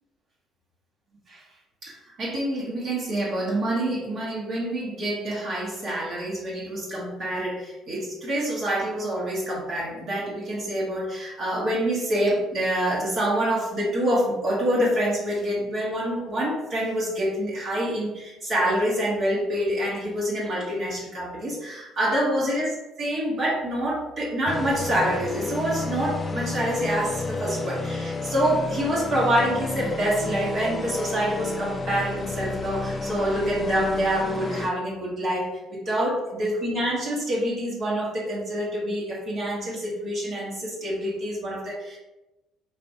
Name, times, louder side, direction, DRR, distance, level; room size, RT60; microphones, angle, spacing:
voice 1, 1.8-22.7 23.0-42.0, right 1 dB, 55° right, -6 dB, 1.0 m, -26 dB
sound 1, 24.5-34.7, left 3 dB, 35° left, 0.3 m, -31 dB
3.4 x 2.5 x 2.7 m, 1.0 s
hypercardioid pair, 55°, 0 cm